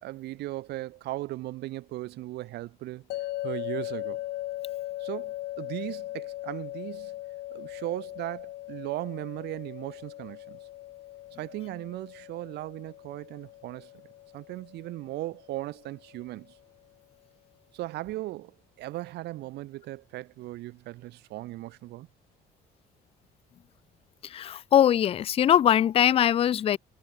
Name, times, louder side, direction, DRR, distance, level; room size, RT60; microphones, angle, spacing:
voice 1, 0.0-3.1 3.4-4.2 5.0-7.1 7.5-10.6 11.4-13.9 14.3-16.5 17.7-22.1, right 17 dB, 80° right, 3.5 m, -37 dB
sound 1, 3.1-16.2, left 15 dB, 75° left, 1.5 m, -39 dB
voice 2, 24.3-26.8, left 10 dB, 35° left, 0.4 m, -21 dB
cardioid pair, 110°, 17 cm